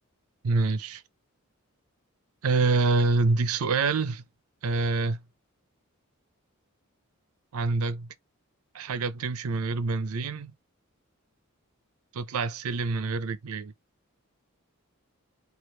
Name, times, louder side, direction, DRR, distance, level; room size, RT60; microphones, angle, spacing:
voice 1, 0.4-1.0 2.4-4.2 4.6-5.2 7.5-8.1 8.7-10.5 12.1-13.7, right 3 dB, 85° right, 0.5 m, -26 dB
3.2 x 2.4 x 4.4 m
head